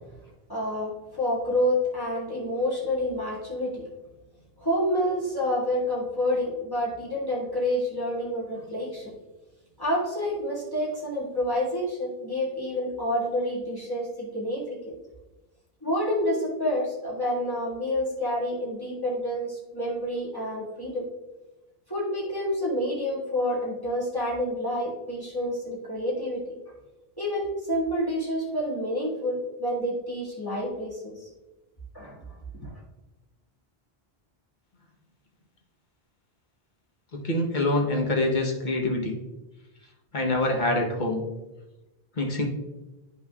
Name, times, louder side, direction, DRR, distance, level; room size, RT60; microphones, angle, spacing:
voice 1, 0.5-3.8 4.6-9.1 9.8-14.9 15.8-21.1 21.9-26.6 27.2-31.2 31.9-32.4 32.6-32.7, left 1 dB, 20° left, -6 dB, 1.8 m, -28 dB
voice 2, 37.1-39.2 40.1-41.3 42.2-42.4, left 2 dB, 50° left, 0 dB, 1.1 m, -25 dB
9.9 x 5.7 x 2.3 m, 1.1 s
omnidirectional pair, 1.0 m